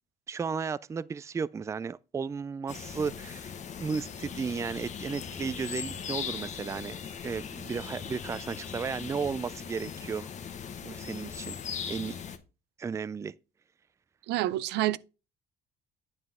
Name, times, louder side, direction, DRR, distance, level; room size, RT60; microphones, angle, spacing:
voice 1, 0.3-10.3 10.8-11.6 11.9-12.1 12.8-13.3, right 5 dB, 15° right, 0.3 m, -34 dB
sound 1, 2.7-12.4, left 7 dB, 45° left, 1.2 m, -39 dB
voice 2, 14.3-15.0, right 15 dB, 80° right, 0.5 m, -28 dB
9.5 x 5.5 x 3.6 m
cardioid pair, 110°, 17 cm